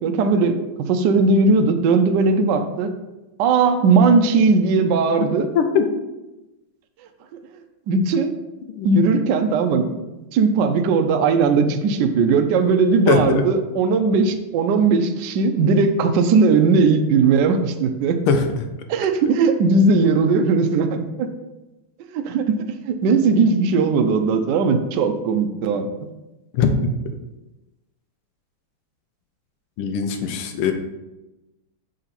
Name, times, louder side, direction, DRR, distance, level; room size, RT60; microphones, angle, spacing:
voice 1, 0.0-2.9 3.4-5.5 7.9-8.4 8.8-18.2 18.9-21.3 22.1-22.5 22.8-25.9, right 4 dB, 75° right, 6 dB, 1.0 m, -18 dB
voice 2, 5.5-5.9 8.8-8.9 13.1-13.4 18.3-18.7 26.5-26.7 29.8-30.7, left 6 dB, 85° left, 6 dB, 1.6 m, -20 dB
5.9 x 3.9 x 4.1 m, 1.0 s
omnidirectional pair, 2.3 m